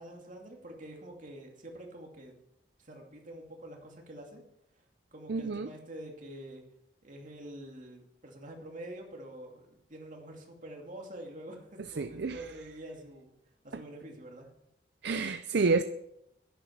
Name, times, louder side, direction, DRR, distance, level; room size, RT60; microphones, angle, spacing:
voice 1, 0.0-2.3 2.8-4.4 5.1-6.6 7.0-13.3 13.6-14.5, right 1 dB, 45° right, 1 dB, 2.6 m, -46 dB
voice 2, 5.3-5.7 12.0-12.6 13.7-13.8 15.0-15.8, right 4 dB, 60° right, 10 dB, 0.5 m, -29 dB
10.5 x 10.5 x 5.9 m, 0.80 s
head